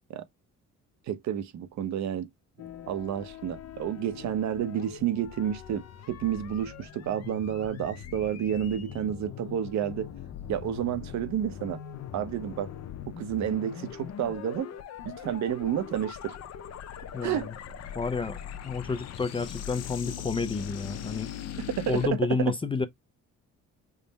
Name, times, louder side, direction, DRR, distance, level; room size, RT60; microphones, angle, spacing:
voice 1, 1.1-2.3 2.9-10.1 10.5-11.8 12.1-12.7 13.1-14.7 15.0-16.4 17.2-17.5 21.8-22.1, right 10 dB, 65° right, 0.6 m, -30 dB
sound 1, 2.6-22.1, left 9 dB, 55° left, 0.7 m, -41 dB
voice 2, 17.1-17.6 17.9-18.4 18.6-21.3 21.9-22.9, left 4 dB, 20° left, 0.4 m, -30 dB
3.7 x 2.0 x 3.9 m
cardioid pair, 90°, 30 cm